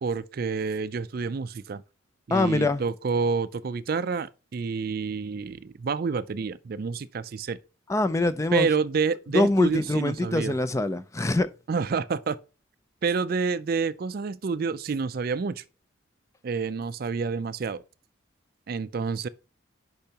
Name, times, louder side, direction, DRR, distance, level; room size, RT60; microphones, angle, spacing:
voice 1, 0.0-1.8 2.3-7.6 8.5-10.6 11.7-12.4 13.0-15.6 16.4-17.8 18.7-19.3, right 5 dB, 50° right, 0.4 m, -28 dB
voice 2, 2.3-2.8 7.9-8.7 9.3-11.5, left 2 dB, 15° left, 0.4 m, -24 dB
10.5 x 5.5 x 2.9 m
head